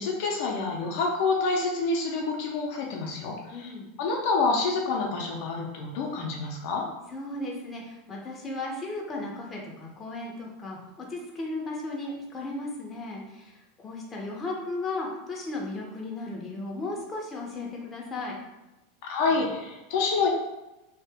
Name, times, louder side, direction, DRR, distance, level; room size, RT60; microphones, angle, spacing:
voice 1, 0.0-3.7 4.0-6.8 19.0-20.3, left 4 dB, 65° left, -1 dB, 0.7 m, -27 dB
voice 2, 3.5-3.9 7.1-13.5 13.8-18.4, left 2 dB, 20° left, -2 dB, 0.8 m, -35 dB
2.9 x 2.4 x 3.5 m, 0.99 s
hypercardioid pair, 115°, 0 cm